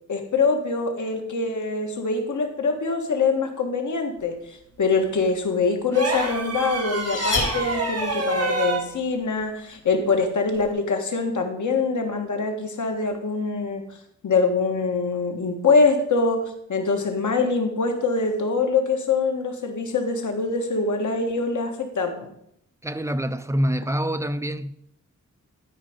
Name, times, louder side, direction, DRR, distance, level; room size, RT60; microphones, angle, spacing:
voice 1, 0.1-13.8 14.2-16.4 16.7-22.3, left 4 dB, 70° left, 1.6 m, -24 dB
sound 1, 5.9-8.9 10.5-10.7, right 2 dB, 55° right, 1.9 m, -27 dB
sound 2, 6.2-8.3, left 3 dB, 90° left, 3.5 m, -30 dB
voice 2, 22.8-24.7, equal, 10° right, 0.4 m, -26 dB
12.5 x 5.0 x 5.1 m
wide cardioid pair, 125°, 30 cm